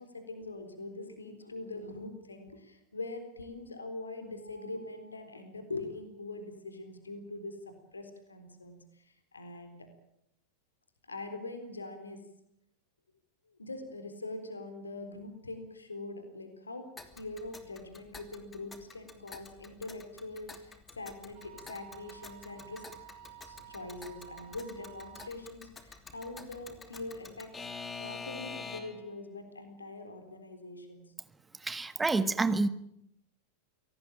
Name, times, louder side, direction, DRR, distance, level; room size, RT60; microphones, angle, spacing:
voice 1, 0.0-9.9 11.1-12.2 13.5-16.9 17.1-22.8 23.4-27.5 28.0-31.0, left 2 dB, 75° left, 8 dB, 3.9 m, -43 dB
Alarm / Clock, 17.0-29.1, left 4 dB, 15° left, 2.9 m, -47 dB
Wind instrument woodwind instrument, 21.3-25.3, right 11 dB, 55° right, 4.3 m, -52 dB
voice 2, 31.6-32.7, right 3 dB, 10° right, 14 dB, 1.4 m, -28 dB
25.0 x 18.5 x 9.0 m, 0.76 s
figure-of-eight pair, 90°, 0 cm